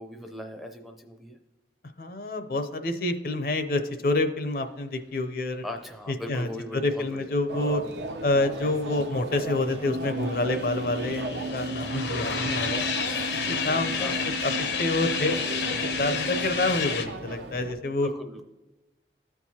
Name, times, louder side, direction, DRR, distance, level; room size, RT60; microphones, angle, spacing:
voice 1, 0.0-1.4 5.6-7.3 7.7-7.8 13.4-14.2 18.0-18.4, left 1 dB, ahead, 3 dB, 0.4 m, -39 dB
voice 2, 2.0-5.6 6.1-7.8 8.2-12.8 13.4-14.5 14.8-15.5 15.8-18.1, left 2 dB, 55° left, 8 dB, 0.5 m, -28 dB
sound 1, 7.5-17.7, right 2 dB, 80° right, 0.6 m, -37 dB
sound 2, 9.8-16.7, right 3 dB, 55° right, 1.1 m, -36 dB
sound 3, 9.9-17.1, left 6 dB, 85° left, 0.8 m, -31 dB
13.5 x 4.6 x 2.8 m, 1.1 s
head